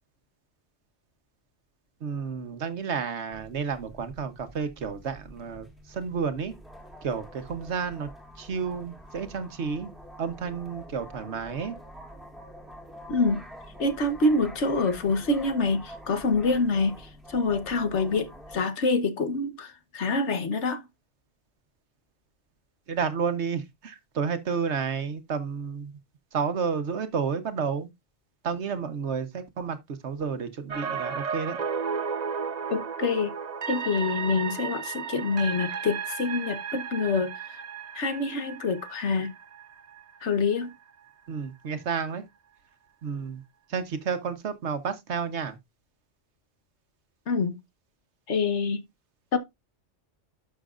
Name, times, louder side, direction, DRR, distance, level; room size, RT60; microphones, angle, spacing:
voice 1, 2.0-6.5 7.0-8.1 8.4-9.9 10.2-11.7 22.9-25.9 26.3-27.9 28.4-31.6 41.3-42.3 43.0-43.4 43.7-45.6, right 6 dB, 70° right, 1.3 m, -31 dB
sound 1, 3.3-18.6, equal, ahead, 1.9 m, -46 dB
voice 2, 13.1-13.4 13.8-16.9 17.3-20.8 32.7-33.3 33.7-37.3 37.9-39.3 40.2-40.7 47.3-47.6 48.3-48.8 49.3-49.4, left 3 dB, 70° left, 1.5 m, -26 dB
sound 2, 30.7-40.7 41.1-41.2, right 6 dB, 40° right, 0.8 m, -34 dB
11.5 x 6.5 x 2.5 m
omnidirectional pair, 1.2 m